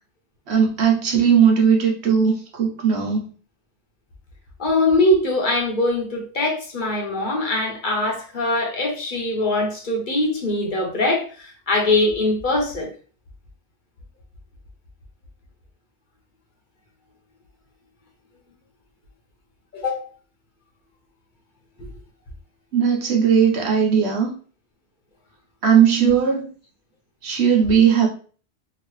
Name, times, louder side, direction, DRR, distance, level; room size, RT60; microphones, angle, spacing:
voice 1, 0.5-3.3 22.7-24.3 25.6-26.5 27.2-28.1, right 7 dB, 90° right, 1.2 m, -18 dB
voice 2, 4.6-12.9 19.7-20.1, left 2 dB, 50° left, 1.0 m, -22 dB
2.9 x 2.8 x 3.1 m
omnidirectional pair, 1.1 m